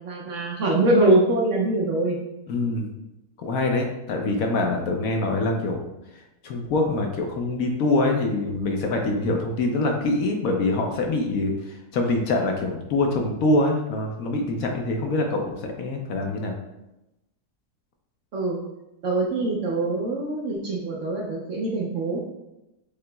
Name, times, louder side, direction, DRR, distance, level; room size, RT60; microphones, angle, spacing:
voice 1, 0.0-2.2 18.3-18.6 19.0-22.2, right 2 dB, 60° right, -2 dB, 0.8 m, -23 dB
voice 2, 2.5-2.9 3.4-5.8 6.1-16.5, left 2 dB, 70° left, 2 dB, 1.0 m, -24 dB
6.7 x 2.8 x 2.2 m, 0.93 s
omnidirectional pair, 1.7 m